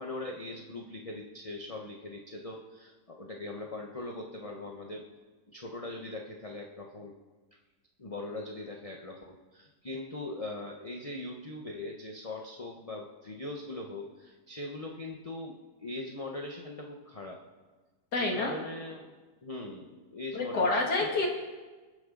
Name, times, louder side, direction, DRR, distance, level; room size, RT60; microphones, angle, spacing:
voice 1, 0.0-5.1 5.5-7.1 8.0-17.4 18.2-20.8, left 2 dB, 25° left, 1 dB, 1.0 m, -41 dB
voice 2, 18.1-18.6 20.3-21.3, left 2 dB, 85° left, -1 dB, 2.8 m, -28 dB
26.0 x 9.9 x 3.9 m, 1.3 s
omnidirectional pair, 1.7 m